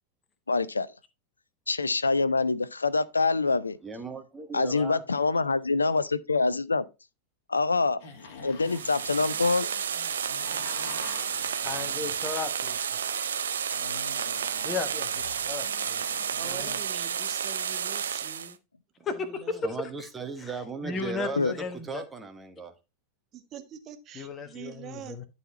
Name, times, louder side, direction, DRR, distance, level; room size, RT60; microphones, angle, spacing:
voice 1, 0.5-0.9 1.7-3.8 4.5-6.8 7.5-8.0 8.4-9.7 21.4-21.5, left 3 dB, 80° left, 0.5 m, -25 dB
voice 2, 3.8-5.0 19.6-22.7, right 4 dB, 15° right, 1.5 m, -37 dB
sound 1, 8.0-12.5 13.5-16.8, left 4 dB, 50° left, 2.1 m, -46 dB
sound 2, 8.6-18.5, right 8 dB, 65° right, 0.7 m, -31 dB
voice 3, 11.6-13.0 14.6-16.2 19.0-20.1 20.4-20.5 20.8-22.0 24.1-25.2, left 4 dB, 25° left, 1.3 m, -35 dB
voice 4, 16.4-18.6 19.0-19.7 23.3-25.2, right 9 dB, 30° right, 1.3 m, -44 dB
11.5 x 4.2 x 4.2 m
figure-of-eight pair, 90°, 0 cm